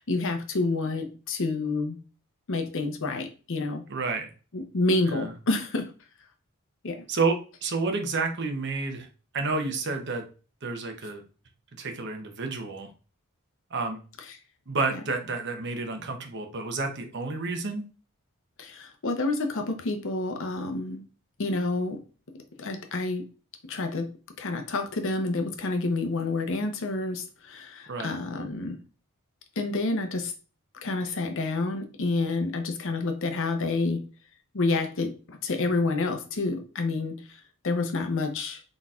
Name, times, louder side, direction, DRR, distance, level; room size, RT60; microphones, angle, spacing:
voice 1, 0.0-2.0 2.5-3.8 4.5-5.9 6.8-7.0 14.9-15.0 18.6-21.0 21.4-22.0 22.3-23.3 23.7-24.1 24.4-28.8 29.6-30.3 30.8-34.0 34.5-37.4 37.6-38.6, left 3 dB, 60° left, 6 dB, 0.7 m, -28 dB
voice 2, 3.9-4.3 5.1-5.3 7.1-9.1 9.3-10.2 10.6-11.2 11.8-12.9 13.7-14.0 14.7-17.8 27.9-28.1, right 3 dB, 55° right, 5 dB, 0.8 m, -30 dB
4.1 x 3.9 x 2.4 m, 0.36 s
head